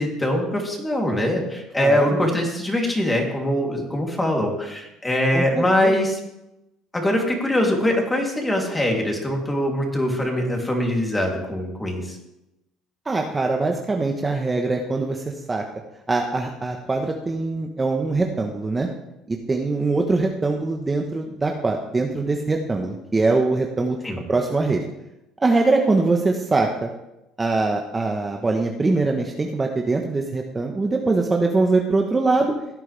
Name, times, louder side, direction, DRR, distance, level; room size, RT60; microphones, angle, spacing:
voice 1, 0.0-6.2 6.9-12.2 24.0-24.2, left 1 dB, 10° left, 0 dB, 3.2 m, -22 dB
voice 2, 1.8-2.2 5.3-5.9 13.0-15.6 16.1-18.9 19.3-24.0 24.3-24.8 25.4-26.9 27.4-32.5, right 3 dB, 20° right, 2 dB, 1.2 m, -22 dB
17.0 x 9.3 x 3.5 m, 0.91 s
supercardioid pair, 100°, 0 cm